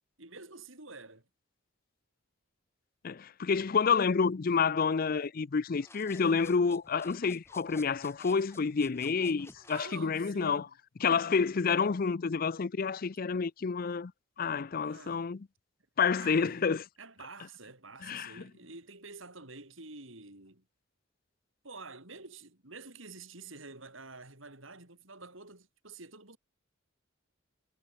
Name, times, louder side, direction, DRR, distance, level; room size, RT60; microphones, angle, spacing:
voice 1, 0.2-1.3 9.7-10.7 14.6-15.3 16.2-16.6 17.0-20.6 21.6-26.4, right 3 dB, 70° right, 6.3 m, -48 dB
voice 2, 3.0-10.7 11.0-14.1 14.4-15.5 16.0-16.8 18.0-18.4, left 5 dB, 45° left, 0.5 m, -29 dB
sound 1, 5.7-9.9, left 2 dB, 15° left, 5.3 m, -55 dB
head